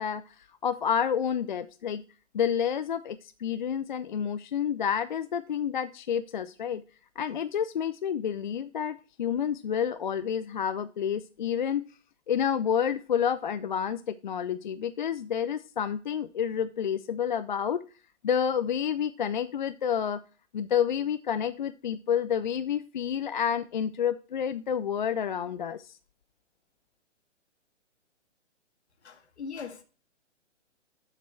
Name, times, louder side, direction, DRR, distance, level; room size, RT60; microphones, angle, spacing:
voice 1, 0.0-2.0 2.3-6.8 7.2-11.8 12.3-17.8 18.2-20.2 20.5-26.0, left 8 dB, 40° left, 12 dB, 0.4 m, -29 dB
voice 2, 29.0-29.8, left 5 dB, 65° left, 6 dB, 1.7 m, -40 dB
7.4 x 6.6 x 4.4 m, 0.36 s
figure-of-eight pair, 135°, 36 cm